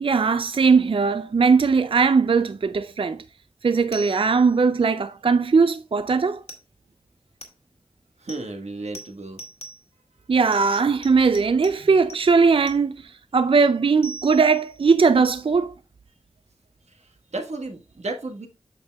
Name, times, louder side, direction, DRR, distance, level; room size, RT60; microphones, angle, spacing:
voice 1, 0.0-3.2 3.6-6.4 10.3-15.7, right 5 dB, 55° right, 0.4 m, -19 dB
sound 1, 3.9-4.5 6.5-6.6 7.4-7.5 8.3-8.4 8.9-9.1 9.4-9.8 10.5-11.1 11.3-11.7 12.1-12.2 12.7-12.8 14.0-14.8, right 2 dB, 70° left, 1.9 m, -40 dB
voice 2, 8.2-9.4 17.3-18.5, right 2 dB, 85° right, 1.3 m, -33 dB
8.0 x 6.9 x 2.2 m
wide cardioid pair, 65°, 11 cm